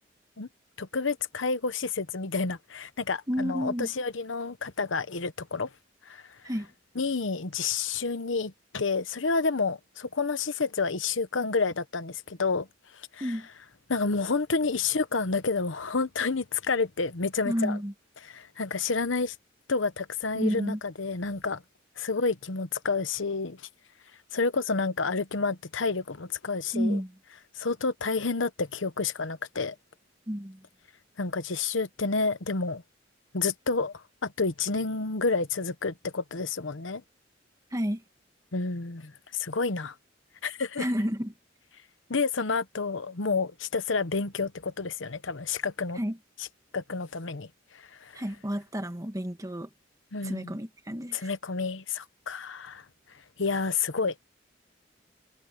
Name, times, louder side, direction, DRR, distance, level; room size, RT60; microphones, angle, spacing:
voice 1, 0.8-5.7 6.1-6.2 7.0-12.7 13.1-13.3 13.9-17.8 18.3-19.3 19.7-21.6 22.0-23.6 24.3-27.0 27.6-29.7 31.2-32.8 33.3-33.9 34.2-37.0 38.5-39.9 40.4-40.9 42.1-46.0 46.4-46.5 46.7-47.5 47.7-48.2 50.1-50.6 51.1-52.8 53.4-54.1, left 4 dB, 80° left, 1.0 m, -29 dB
voice 2, 3.3-3.9 6.4-6.7 13.2-13.5 17.4-17.9 20.3-20.8 26.7-27.1 30.3-30.6 37.7-38.0 40.8-41.3 45.9-46.2 48.1-49.7 50.2-51.3, equal, 20° right, 1.7 m, -30 dB
head